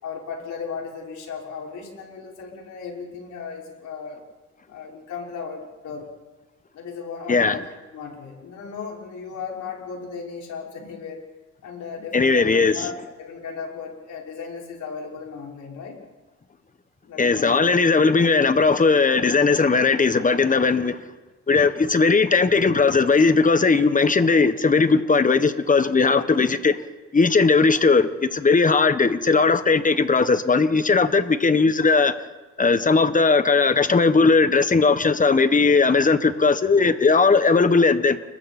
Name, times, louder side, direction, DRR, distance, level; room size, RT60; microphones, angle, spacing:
voice 1, 0.0-4.2 4.7-6.1 6.7-7.6 7.9-11.2 11.6-16.0 17.0-17.7, left 5 dB, 75° left, 6.1 m, -36 dB
voice 2, 12.1-12.8 17.2-21.0 21.5-26.8 27.1-32.1 32.6-38.2, left 4 dB, 25° left, 1.5 m, -18 dB
29.5 x 21.5 x 4.5 m
cardioid pair, 90°, 30 cm